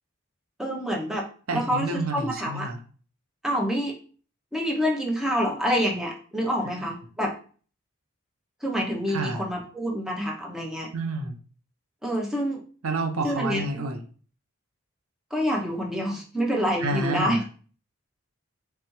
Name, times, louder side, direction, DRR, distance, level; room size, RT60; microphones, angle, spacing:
voice 1, 0.6-1.2 1.5-2.7 3.4-4.0 4.5-7.3 8.6-10.9 12.0-12.6 13.2-13.8 15.3-17.4, equal, ahead, -1 dB, 0.6 m, -27 dB
voice 2, 1.5-2.8 9.1-9.4 10.9-11.4 12.8-14.0 16.8-17.5, right 2 dB, 85° right, 4 dB, 0.7 m, -29 dB
3.5 x 3.3 x 3.0 m, 0.41 s
head